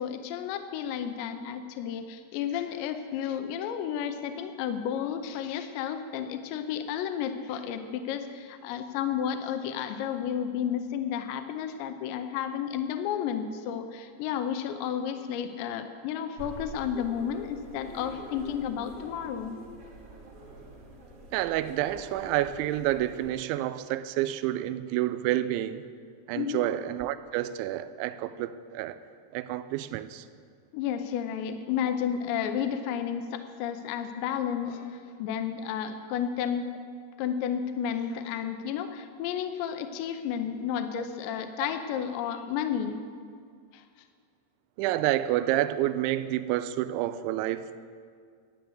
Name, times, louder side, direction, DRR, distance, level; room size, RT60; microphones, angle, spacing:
voice 1, 0.0-19.6 26.4-26.7 30.7-36.7 37.2-43.0 43.7-43.8, left 8 dB, 85° left, 2.8 m, -32 dB
sound 1, 16.4-23.3, right 2 dB, 70° right, 1.4 m, -46 dB
voice 2, 21.3-25.8 26.3-29.0 29.3-30.3 44.8-47.8, right 13 dB, 85° right, 2.9 m, -29 dB
12.0 x 9.1 x 7.8 m
omnidirectional pair, 5.4 m